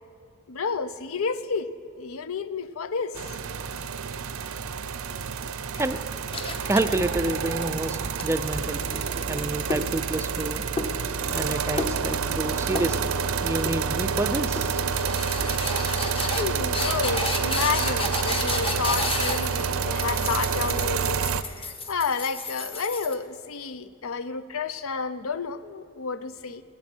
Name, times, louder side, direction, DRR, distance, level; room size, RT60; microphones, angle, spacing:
voice 1, 0.5-1.7 2.0-3.2 16.4-21.2 21.5-26.6, left 5 dB, 75° left, 13 dB, 0.6 m, -30 dB
sound 1, 3.1-21.4, right 6 dB, 75° right, 0.5 m, -28 dB
sound 2, 6.3-7.5 7.9-10.5 10.8-11.5 11.8-12.4 12.7-13.3 13.7-14.2 14.6-23.1, left 2 dB, 25° left, 1.1 m, -32 dB
voice 2, 6.7-8.9 9.3-10.6 11.3-13.1 13.4-14.8, right 2 dB, 10° right, 10 dB, 0.4 m, -29 dB
21.0 x 7.7 x 6.2 m, 2.4 s
head